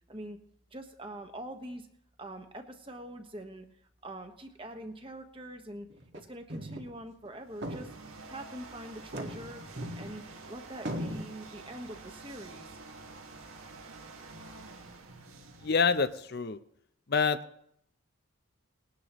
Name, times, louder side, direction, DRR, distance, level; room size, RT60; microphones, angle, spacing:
voice 1, 0.7-1.9 2.2-3.7 4.0-5.9 6.1-7.9 8.3-9.6 10.0-12.7, right 1 dB, 25° right, 5 dB, 1.3 m, -44 dB
sound 1, 5.9-6.2 6.5-6.9 7.3-7.4 7.6-8.4 9.0-10.4 10.9-11.2, equal, 55° right, 1.8 m, -38 dB
sound 2, 7.3-16.5, right 3 dB, 85° right, 1.9 m, -49 dB
voice 2, 15.6-16.6 17.1-17.4, left 5 dB, 50° left, 11 dB, 0.6 m, -26 dB
20.5 x 11.0 x 3.1 m, 0.70 s
head